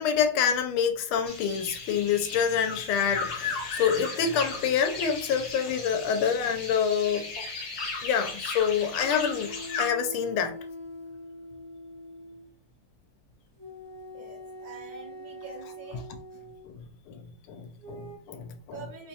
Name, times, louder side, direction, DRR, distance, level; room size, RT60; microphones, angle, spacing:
voice 1, 0.0-7.3 8.0-9.5 9.8-10.5 16.7-16.8 17.1-17.2 17.5-18.8, left 7 dB, 80° left, 1.4 m, -27 dB
sound 1, 1.3-9.9, left 4 dB, 60° left, 1.2 m, -36 dB
sound 2, 9.0-12.5 13.6-16.7 17.8-18.2, left 1 dB, 25° right, 0.7 m, -43 dB
voice 2, 14.1-16.0 18.7-19.1, right 4 dB, 70° right, 1.9 m, -45 dB
4.3 x 2.3 x 2.7 m
omnidirectional pair, 2.3 m